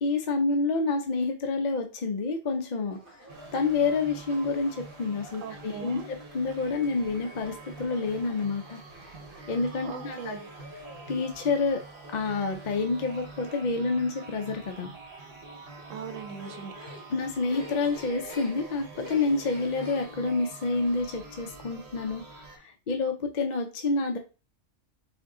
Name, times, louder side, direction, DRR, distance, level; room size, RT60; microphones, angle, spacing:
voice 1, 0.0-3.0 3.5-8.8 9.5-10.4 11.1-11.8 12.1-14.9 17.1-22.2 22.5-24.2, left 3 dB, 55° left, 4 dB, 0.5 m, -28 dB
sound 1, 2.9-20.2, equal, 45° right, 2.0 m, -51 dB
sound 2, 3.3-22.6, right 3 dB, 60° right, 1.4 m, -46 dB
voice 2, 5.4-6.0 9.8-10.4 15.9-16.7, right 6 dB, 85° right, 8 dB, 1.1 m, -39 dB
3.7 x 3.5 x 3.7 m, 0.33 s
omnidirectional pair, 1.3 m